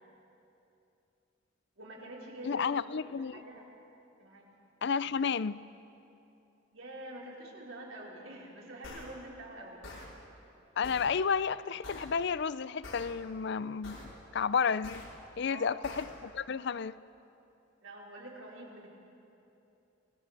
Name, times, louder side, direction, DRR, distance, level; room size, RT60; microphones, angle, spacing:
voice 1, 1.8-2.8 3.2-3.7 4.2-4.5 6.7-9.9 15.5-15.9 17.8-18.9, right 1 dB, 90° right, 4.7 m, -46 dB
voice 2, 2.4-3.4 4.8-5.6 10.8-15.0 15.4-17.0, left 6 dB, 60° left, 0.5 m, -32 dB
sound 1, 8.8-9.0 9.8-10.0 10.8-11.0 11.8-12.0 12.8-13.0 13.8-14.0 14.8-15.0 15.8-16.0, left 2 dB, 90° left, 5.7 m, -45 dB
27.5 x 17.5 x 6.7 m
head